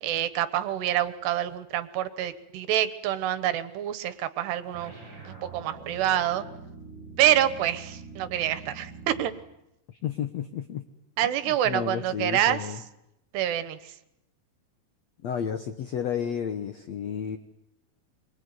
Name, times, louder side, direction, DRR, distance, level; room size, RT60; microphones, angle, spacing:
voice 1, 0.0-4.9 5.2-6.5 7.2-9.3 11.2-12.6 13.3-13.9, right 11 dB, 80° right, 12 dB, 3.3 m, -27 dB
sound 1, 4.7-9.5, right 4 dB, 25° right, 6.2 m, -44 dB
voice 2, 9.9-10.8 11.2-12.8 15.2-17.4, left 8 dB, 70° left, 9 dB, 1.6 m, -32 dB
26.0 x 23.0 x 9.6 m, 0.87 s
omnidirectional pair, 4.8 m